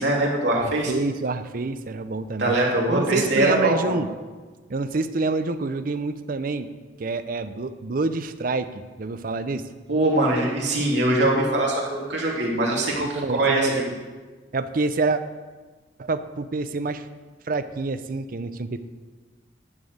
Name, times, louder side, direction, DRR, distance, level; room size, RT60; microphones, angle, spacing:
voice 1, 0.0-0.9 2.4-3.9 9.9-13.9, right 1 dB, 70° right, -3 dB, 2.8 m, -22 dB
voice 2, 0.5-2.5 2.9-4.1 4.7-6.7 7.0-9.6 13.1-14.0 14.5-15.2 16.0-17.0 17.5-18.8, right 3 dB, 50° right, 12 dB, 0.5 m, -27 dB
11.0 x 5.3 x 7.9 m, 1.3 s
head